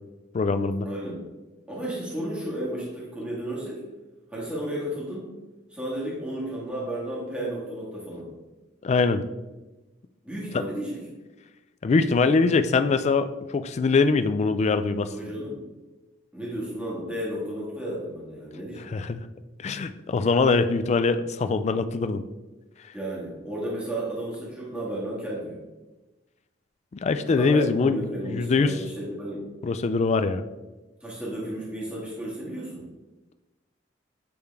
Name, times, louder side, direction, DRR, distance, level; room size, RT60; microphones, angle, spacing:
voice 1, 0.3-0.9 8.8-9.2 11.8-15.1 18.9-19.2 19.6-22.2 26.9-28.8 29.6-30.4, left 4 dB, 35° left, 10 dB, 0.3 m, -23 dB
voice 2, 0.8-1.2 1.7-3.8 4.3-5.3 5.7-8.3 10.2-11.0 15.1-15.6 16.3-18.9 22.9-25.6 27.2-29.5 31.0-32.9, right 1 dB, 5° right, -6 dB, 1.5 m, -33 dB
8.6 x 3.3 x 3.4 m, 1.1 s
head